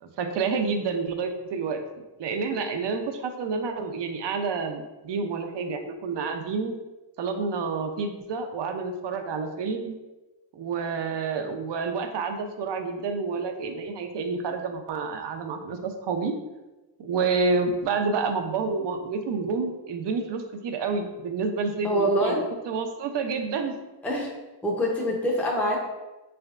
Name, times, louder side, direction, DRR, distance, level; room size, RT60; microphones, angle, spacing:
voice 1, 0.0-1.8 2.2-6.8 7.2-10.0 10.5-16.3 17.0-22.4 22.7-23.8, right 4 dB, 70° right, 6 dB, 0.6 m, -29 dB
voice 2, 21.8-22.4 24.0-24.3 24.6-25.8, equal, 5° left, -2 dB, 0.5 m, -25 dB
4.4 x 3.4 x 2.4 m, 1.1 s
wide cardioid pair, 115°, 44 cm